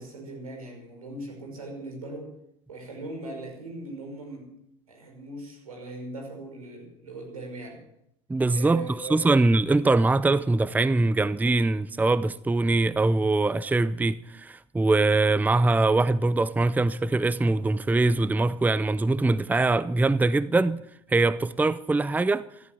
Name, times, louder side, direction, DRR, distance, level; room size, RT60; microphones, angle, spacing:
voice 1, 0.0-2.3 2.7-4.5 4.9-7.8 8.5-9.4, right 2 dB, 90° right, 5.7 m, -39 dB
voice 2, 8.3-8.8 9.1-20.8 21.1-22.5, right 2 dB, 10° right, 0.6 m, -23 dB
14.5 x 12.5 x 7.4 m
hypercardioid pair, 70°, 18 cm